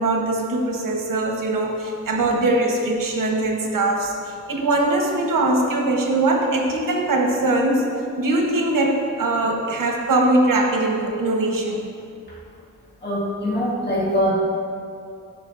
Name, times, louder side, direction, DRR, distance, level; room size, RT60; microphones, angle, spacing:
voice 1, 0.0-7.9 8.2-11.9, right 2 dB, 85° right, 1 dB, 1.0 m, -21 dB
voice 2, 13.0-14.3, equal, 30° left, -6 dB, 1.8 m, -23 dB
11.5 x 5.5 x 2.5 m, 2.5 s
wide cardioid pair, 100°, 32 cm